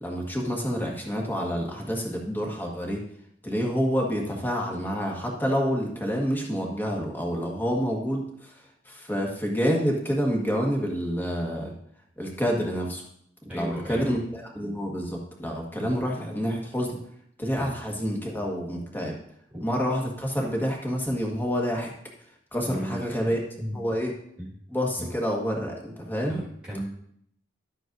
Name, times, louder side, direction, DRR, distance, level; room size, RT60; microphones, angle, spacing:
voice 1, 0.0-3.0 3.4-8.5 8.8-11.7 12.2-13.0 13.5-17.0 17.4-19.2 19.6-21.9 22.5-23.4 23.7-24.1 24.7-26.4, equal, 10° left, -1 dB, 1.5 m, -28 dB
voice 2, 13.5-14.2 17.6-17.8 19.5-19.6 22.7-23.8 24.4-24.5 25.0-25.1 26.3-26.8, equal, 5° right, -7 dB, 1.8 m, -36 dB
12.0 x 8.2 x 2.6 m, 0.69 s
head